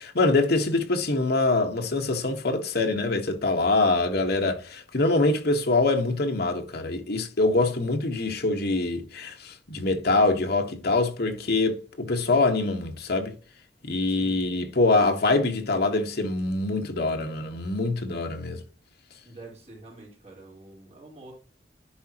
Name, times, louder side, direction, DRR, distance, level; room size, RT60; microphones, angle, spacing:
voice 1, 0.0-13.3 13.9-18.6, left 2 dB, 65° left, 1.3 m, -24 dB
voice 2, 14.1-14.4 19.2-21.3, right 2 dB, 40° right, 3.8 m, -46 dB
10.5 x 4.9 x 2.9 m
head